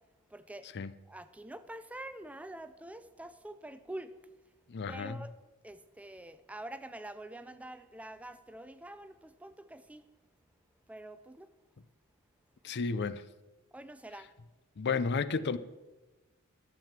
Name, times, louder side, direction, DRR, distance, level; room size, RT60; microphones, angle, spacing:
voice 1, 0.3-0.7 1.1-4.1 4.9-5.3 5.6-10.0 10.9-11.5 13.7-14.3, right 1 dB, 5° right, 0.4 m, -46 dB
voice 2, 4.7-5.2 12.6-13.2 14.8-15.6, left 4 dB, 50° left, 0.5 m, -32 dB
12.0 x 7.6 x 7.3 m
head